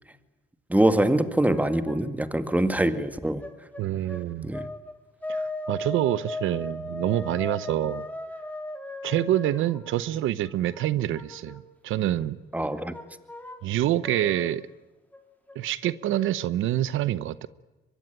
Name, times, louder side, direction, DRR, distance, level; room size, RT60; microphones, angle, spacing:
voice 1, 0.7-3.4 4.4-4.7 12.5-12.9, right 1 dB, 5° right, 9 dB, 2.0 m, -24 dB
sound 1, 1.4-2.1 3.4-5.0 5.2-11.6 12.2-13.7 14.0-14.5 15.1-15.2 15.5-16.3, left 2 dB, 10° left, 3.2 m, -37 dB
voice 2, 3.8-4.5 5.3-8.0 9.0-12.4 13.6-14.7 15.5-17.5, right 13 dB, 85° right, 16 dB, 0.9 m, -26 dB
24.0 x 22.5 x 9.1 m, 1.1 s
cardioid pair, 90°, 20 cm